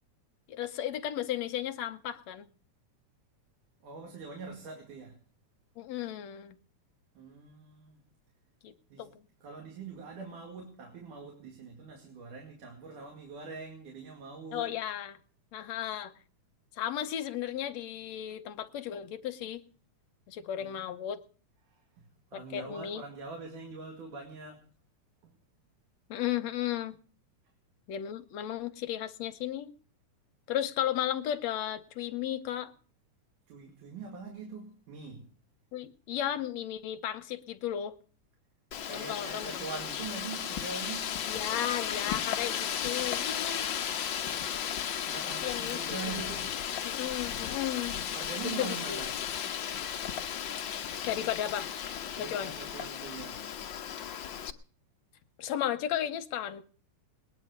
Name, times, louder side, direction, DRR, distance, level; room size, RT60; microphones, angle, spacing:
voice 1, 0.5-2.5 5.8-6.6 8.6-9.2 14.5-15.2 15.5-16.1 16.8-19.6 20.3-21.2 22.3-23.0 26.1-27.0 27.9-29.7 30.5-32.7 35.7-38.0 38.9-39.6 41.3-43.7 45.4-46.3 46.8-48.0 48.6-49.1 51.1-51.7 52.2-52.5 55.4-56.6, left 11 dB, 70° left, 2.0 m, -34 dB
voice 2, 3.8-5.2 7.2-8.1 8.9-9.1 9.4-14.7 20.6-20.7 21.7-24.7 25.2-25.3 33.5-35.3 38.9-41.2 45.0-46.6 48.1-49.2 52.2-53.4, right 4 dB, 85° right, 3.8 m, -43 dB
Wind, 38.7-54.5, left 9 dB, 85° left, 1.0 m, -35 dB
19.5 x 10.5 x 6.6 m
omnidirectional pair, 3.5 m